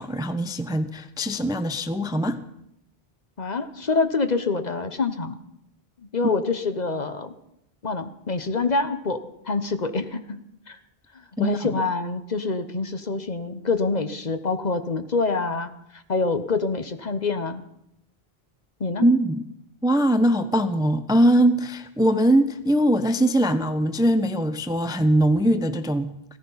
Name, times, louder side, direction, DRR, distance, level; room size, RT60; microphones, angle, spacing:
voice 1, 0.0-2.4 11.4-11.7 19.0-19.4 19.8-26.4, right 1 dB, 5° right, 11 dB, 0.6 m, -21 dB
voice 2, 3.4-5.4 6.1-7.3 7.8-10.4 10.7-10.8 11.1-17.6 18.8-19.0, left 3 dB, 45° left, 9 dB, 1.1 m, -26 dB
16.5 x 14.0 x 5.7 m, 0.77 s
omnidirectional pair, 1.1 m